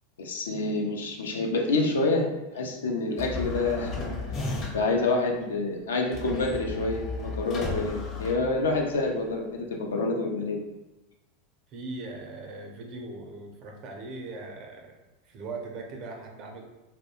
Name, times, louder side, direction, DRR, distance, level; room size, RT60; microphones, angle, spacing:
voice 1, 0.2-4.0 4.7-10.7, left 3 dB, 80° left, 1 dB, 0.4 m, -27 dB
sound 1, 3.2-5.0 6.1-9.0, left 3 dB, 40° left, 0.6 m, -34 dB
voice 2, 11.7-15.0 15.2-16.6, right 3 dB, 50° right, 2 dB, 0.5 m, -39 dB
2.3 x 2.0 x 2.8 m, 1.0 s
hypercardioid pair, 90°, 0 cm